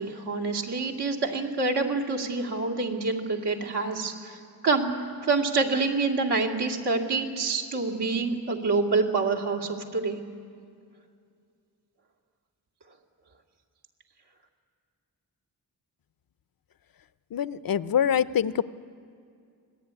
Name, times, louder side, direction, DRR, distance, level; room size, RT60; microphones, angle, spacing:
voice 1, 0.0-4.4 4.6-4.9 5.2-10.2, right 3 dB, 85° right, 1 dB, 2.7 m, -27 dB
voice 2, 17.3-18.6, left 8 dB, 60° left, 15 dB, 0.6 m, -25 dB
26.0 x 20.0 x 9.7 m, 2.4 s
wide cardioid pair, 145°, 39 cm